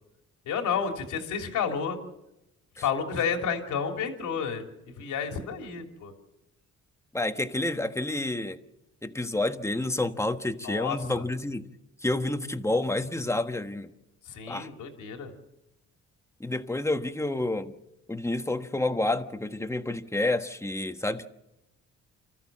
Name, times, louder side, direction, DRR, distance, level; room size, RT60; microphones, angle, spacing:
voice 1, 0.4-2.0 2.8-4.6 5.0-6.1 10.6-11.3 14.2-15.3, left 6 dB, 80° left, 4 dB, 3.2 m, -31 dB
voice 2, 7.1-8.6 9.0-11.7 12.0-13.9 14.5-14.7 16.4-17.7 18.1-21.2, left 2 dB, 10° left, 8 dB, 1.3 m, -29 dB
29.0 x 14.0 x 7.5 m, 0.93 s
cardioid pair, 90°, 30 cm